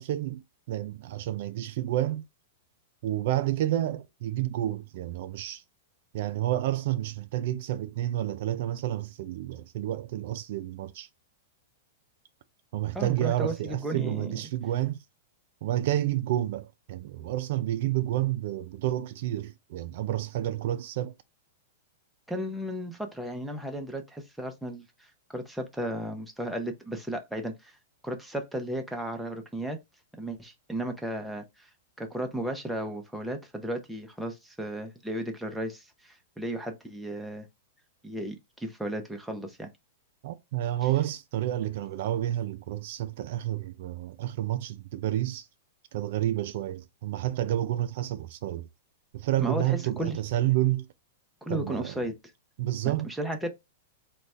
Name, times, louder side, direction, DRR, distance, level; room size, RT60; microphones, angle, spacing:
voice 1, 0.0-2.2 3.0-5.6 6.1-11.1 12.7-15.0 15.6-21.1 40.2-45.5 45.9-48.7 49.1-50.9 51.5-52.0 52.6-53.1, right 13 dB, 55° right, 0.4 m, -30 dB
voice 2, 12.9-14.3 22.3-27.7 28.0-29.8 30.2-31.7 32.0-37.5 38.0-39.7 49.4-50.2 51.4-52.1 53.0-53.5, right 1 dB, ahead, 0.6 m, -34 dB
4.0 x 2.3 x 3.2 m
supercardioid pair, 150°, 0 cm